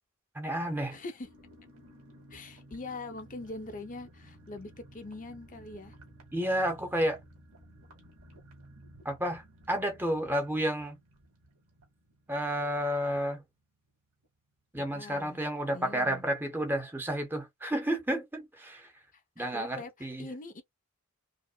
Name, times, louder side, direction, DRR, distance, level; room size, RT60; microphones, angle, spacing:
voice 1, 0.4-1.0 6.3-7.2 9.0-11.0 12.3-13.4 14.7-18.9 19.4-20.3, equal, 10° right, 0.8 m, -31 dB
voice 2, 0.9-1.3 2.3-5.9 14.8-15.4 15.7-16.2 19.1-20.6, left 2 dB, 35° left, 0.8 m, -43 dB
sound 1, 1.2-13.6 13.9-14.0 14.2-14.5, right 1 dB, 70° right, 2.1 m, -55 dB
4.9 x 2.1 x 2.2 m
head